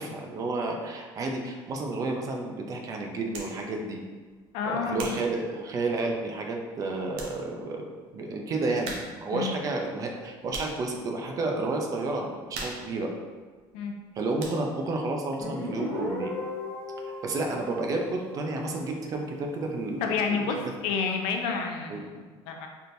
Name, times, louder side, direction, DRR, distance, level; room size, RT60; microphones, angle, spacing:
voice 1, 0.0-4.0 4.6-7.9 8.1-13.1 14.2-16.3 17.0-20.6 21.9-22.0, right 2 dB, 40° right, 2 dB, 0.6 m, -31 dB
sound 1, 3.3-3.6 4.3-6.2 6.8-6.9 7.1-7.4 7.7-7.8 8.8-9.3 9.6-10.9 11.4-11.7 11.9-14.1 14.4-14.9, right 2 dB, 85° right, 0.8 m, -41 dB
voice 2, 4.5-5.1 9.3-9.5 13.7-13.9 20.0-22.7, left 5 dB, 85° left, 3 dB, 0.6 m, -30 dB
Guitar, 15.4-18.9, left 1 dB, 25° left, 0.9 m, -36 dB
4.3 x 3.5 x 2.6 m, 1.4 s
cardioid pair, 135°, 9 cm